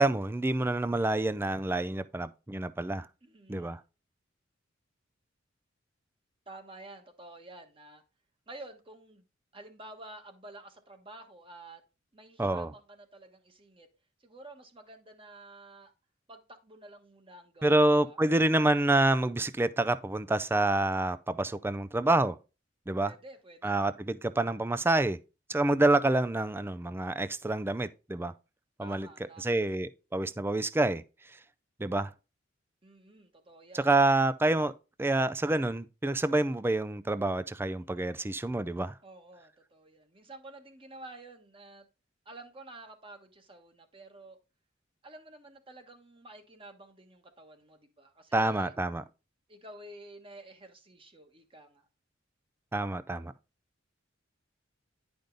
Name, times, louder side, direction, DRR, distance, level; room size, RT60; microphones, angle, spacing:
voice 1, 0.0-3.1 3.5-3.8 12.4-12.7 17.6-22.4 22.9-23.1 23.6-25.2 25.5-28.3 28.8-29.1 29.4-31.0 31.8-32.1 33.7-34.7 35.0-39.0 48.3-49.0 52.7-53.3, right 2 dB, 10° right, 0.4 m, -27 dB
voice 2, 3.2-3.8 6.5-8.0 8.5-9.2 9.5-11.8 12.1-13.9 14.2-15.9 16.3-18.2 23.0-23.8 28.8-29.5 32.8-33.9 39.0-41.9 42.2-44.4 45.0-48.7 49.5-51.8, right 2 dB, 25° right, 1.3 m, -50 dB
10.5 x 5.2 x 3.9 m
head